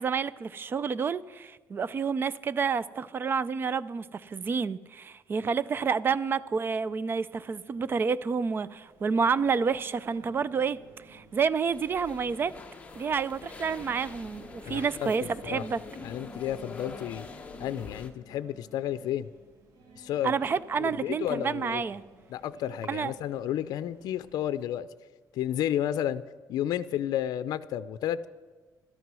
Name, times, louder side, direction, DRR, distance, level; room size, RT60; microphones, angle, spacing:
voice 1, 0.0-10.8 11.1-12.5 13.0-15.8 20.2-22.0 22.9-23.1, right 5 dB, 30° right, 0.4 m, -29 dB
Singing, 8.7-24.7, right 2 dB, 70° right, 3.1 m, -56 dB
sound 1, 11.6-18.1, left 3 dB, 20° left, 1.1 m, -44 dB
voice 2, 14.7-15.1 15.4-15.6 16.0-17.3 17.6-19.3 20.0-20.3 20.8-21.8 22.3-24.9 25.3-26.2 26.5-28.3, left 11 dB, 75° left, 0.5 m, -31 dB
13.0 x 12.5 x 6.2 m
cardioid pair, 140°, 7 cm